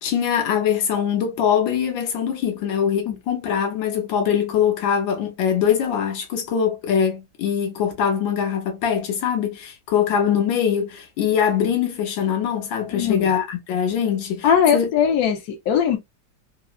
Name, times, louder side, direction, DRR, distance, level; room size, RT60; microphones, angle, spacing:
voice 1, 0.0-14.5 14.7-14.9, left 8 dB, 80° left, 1.5 m, -22 dB
voice 2, 12.9-13.3 14.4-16.0, left 8 dB, 60° left, 1.2 m, -20 dB
3.6 x 2.0 x 2.4 m
omnidirectional pair, 2.1 m